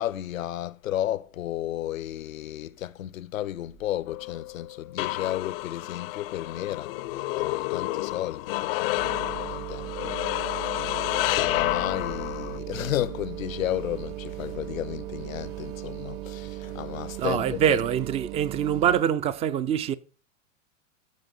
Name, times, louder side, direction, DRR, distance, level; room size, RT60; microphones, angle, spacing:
voice 1, 0.0-10.5 10.8-17.8, left 12 dB, 85° left, 0.7 m, -33 dB
sound 1, 4.1-12.6, left 19 dB, 45° left, 0.6 m, -30 dB
sound 2, 9.0-19.0, right 15 dB, 40° right, 1.0 m, -37 dB
voice 2, 17.2-19.9, right 9 dB, 15° right, 0.4 m, -24 dB
14.0 x 4.9 x 5.4 m
hypercardioid pair, 120°, 39 cm